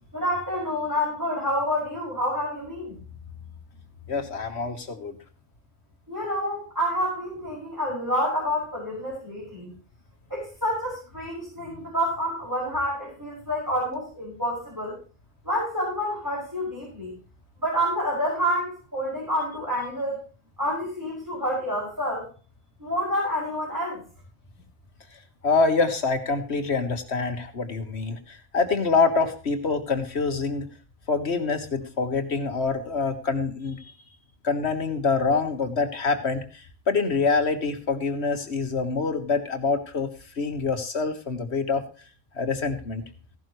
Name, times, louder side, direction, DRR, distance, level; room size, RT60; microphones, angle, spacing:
voice 1, 0.1-2.9 6.1-9.7 10.3-15.0 15.4-17.1 17.6-20.2 20.6-22.3 22.8-24.0, equal, 15° right, -6 dB, 6.3 m, -28 dB
voice 2, 4.1-5.2 25.4-30.7 31.1-33.8 34.4-36.4 36.9-40.1 40.4-41.8 42.4-43.0, left 4 dB, 60° left, 7 dB, 1.8 m, -25 dB
16.0 x 11.5 x 3.2 m, 0.37 s
omnidirectional pair, 1.3 m